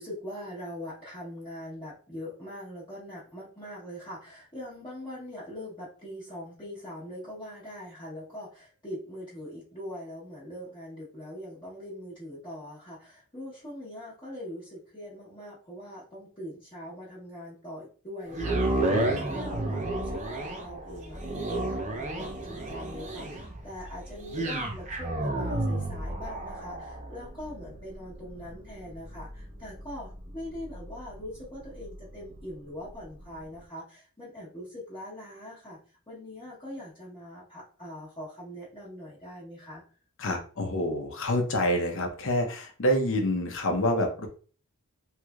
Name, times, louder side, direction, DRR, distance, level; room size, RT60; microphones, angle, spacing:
voice 1, 0.0-35.8 36.1-39.8, left 1 dB, 25° left, -9 dB, 1.1 m, -42 dB
sound 1, 18.3-32.5 33.0-33.1, right 2 dB, 35° right, 0.6 m, -32 dB
voice 2, 18.9-19.2 40.2-44.3, left 1 dB, 65° left, 3 dB, 0.8 m, -27 dB
3.3 x 3.1 x 2.3 m, 0.39 s
head